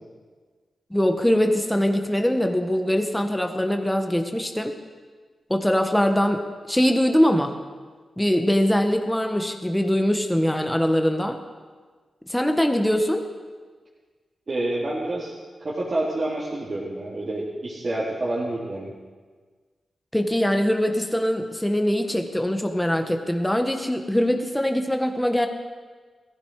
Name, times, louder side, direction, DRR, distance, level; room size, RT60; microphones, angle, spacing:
voice 1, 0.9-4.8 5.5-7.6 8.2-11.4 12.3-13.3 20.1-25.5, equal, 5° left, 5 dB, 1.4 m, -22 dB
voice 2, 14.5-15.3 15.6-18.9, right 1 dB, 45° right, -8 dB, 3.3 m, -28 dB
18.0 x 15.0 x 4.8 m, 1.5 s
cardioid pair, 80°, 0 cm